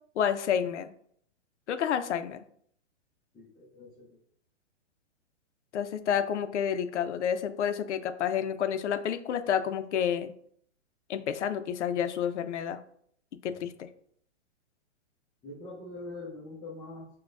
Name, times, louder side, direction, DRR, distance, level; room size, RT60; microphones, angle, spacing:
voice 1, 0.2-0.9 1.7-2.5 5.7-10.3 11.1-12.8 13.4-13.9, left 8 dB, 75° left, 10 dB, 0.5 m, -29 dB
voice 2, 3.3-4.2 13.4-13.6 15.4-17.1, left 2 dB, 10° left, -7 dB, 0.4 m, -43 dB
6.1 x 2.2 x 2.4 m, 0.64 s
hypercardioid pair, 135°, 35 cm